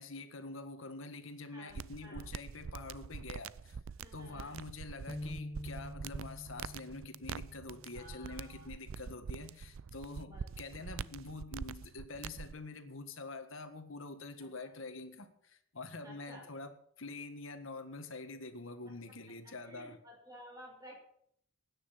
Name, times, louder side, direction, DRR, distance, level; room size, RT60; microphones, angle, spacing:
voice 1, 0.0-3.8 4.1-16.7 17.0-20.0, left 3 dB, 70° left, 9 dB, 1.7 m, -46 dB
sound 1, 1.7-12.5, right 6 dB, 75° right, 0.4 m, -45 dB
voice 2, 4.0-4.5 7.9-8.7 10.2-10.5 10.7-11.1 14.6-14.7 16.0-16.4 19.4-21.0, equal, 15° right, -2 dB, 6.9 m, -54 dB
sound 2, 5.1-8.6, left 1 dB, 20° left, 0.6 m, -47 dB
16.0 x 10.0 x 5.9 m, 0.68 s
head